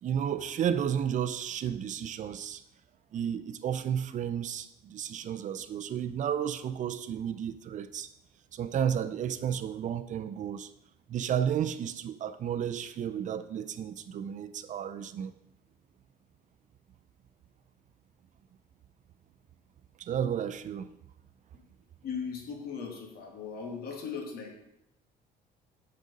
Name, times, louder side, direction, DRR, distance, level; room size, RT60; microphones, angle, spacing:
voice 1, 0.0-2.6 3.1-8.1 8.5-10.7 11.1-15.3 20.0-20.9, right 9 dB, 50° right, 11 dB, 0.5 m, -32 dB
voice 2, 22.0-24.6, left 6 dB, 65° left, 1 dB, 1.8 m, -38 dB
6.4 x 5.3 x 5.3 m, 0.85 s
cardioid pair, 110°, 17 cm